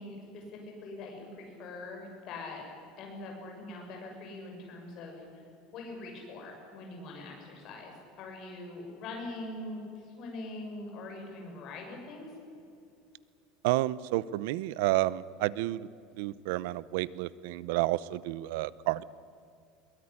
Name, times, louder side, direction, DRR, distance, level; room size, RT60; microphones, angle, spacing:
voice 1, 0.0-5.4 5.7-12.3, left 2 dB, 40° left, 1 dB, 6.7 m, -43 dB
voice 2, 13.6-15.9 16.2-19.0, right 17 dB, 70° right, 19 dB, 0.7 m, -30 dB
22.5 x 19.5 x 10.0 m, 2.5 s
cardioid pair, 170°, 0 cm